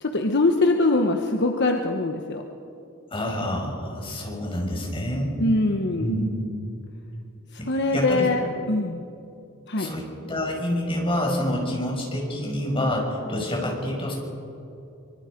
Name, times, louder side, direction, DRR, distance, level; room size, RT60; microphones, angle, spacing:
voice 1, 0.0-2.4 5.4-6.1 7.5-9.1 9.7-9.9, left 2 dB, 55° left, 4 dB, 1.2 m, -23 dB
voice 2, 3.1-5.4 6.0-6.3 7.6-7.7 7.9-8.3 9.8-14.1, left 1 dB, 25° left, -1 dB, 5.8 m, -27 dB
24.5 x 24.0 x 5.2 m, 2.7 s
head